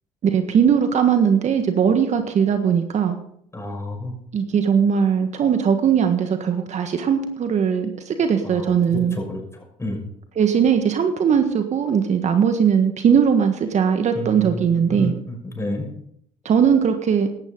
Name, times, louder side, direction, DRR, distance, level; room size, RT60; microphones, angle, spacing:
voice 1, 0.2-3.2 4.3-9.2 10.3-15.1 16.4-17.3, right 7 dB, 50° right, 7 dB, 1.6 m, -19 dB
voice 2, 3.5-4.1 8.4-9.4 9.8-10.0 14.1-14.7 15.0-15.8, left 1 dB, 20° left, 2 dB, 6.1 m, -30 dB
16.5 x 12.5 x 3.9 m, 0.70 s
hypercardioid pair, 65°, 15 cm